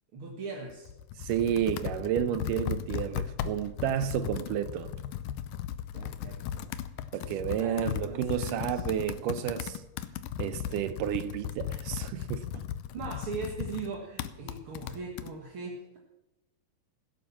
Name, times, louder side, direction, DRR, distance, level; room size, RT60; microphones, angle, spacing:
voice 1, 0.1-0.9 5.9-6.7 7.5-8.8 12.9-16.0, right 4 dB, 45° right, 2.0 m, -40 dB
Computer keyboard, 0.7-15.3, left 10 dB, 75° left, 2.1 m, -37 dB
voice 2, 1.2-4.9 7.1-9.8 10.4-12.7, right 10 dB, 80° right, 2.0 m, -31 dB
16.5 x 10.5 x 7.3 m
omnidirectional pair, 4.3 m